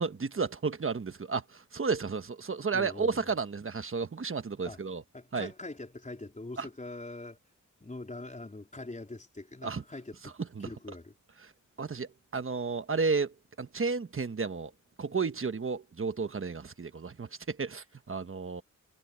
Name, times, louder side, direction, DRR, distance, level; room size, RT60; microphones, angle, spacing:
voice 1, 0.0-5.0 5.3-5.5 6.6-6.7 9.6-9.8 10.2-10.7 11.8-14.7 15.0-18.6, right 4 dB, 45° right, 1.2 m, -32 dB
voice 2, 2.7-3.2 4.7-4.8 5.1-7.4 7.8-10.3 10.6-11.1, left 2 dB, 25° left, 4.1 m, -43 dB
wide cardioid pair, 125°, 31 cm